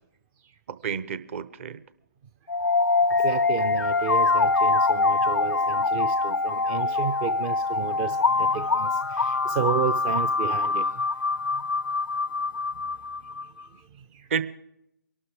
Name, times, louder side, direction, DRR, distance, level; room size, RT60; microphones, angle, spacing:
voice 1, 0.7-1.8 14.3-14.4, right 6 dB, 40° right, 15 dB, 0.9 m, -30 dB
sound 1, 2.5-13.4, left 3 dB, 80° left, 0.5 m, -24 dB
voice 2, 3.1-11.1 11.5-11.6 13.7-14.3, right 8 dB, 20° right, 10 dB, 0.5 m, -32 dB
23.0 x 12.5 x 3.7 m, 0.78 s
figure-of-eight pair, 135°, 11 cm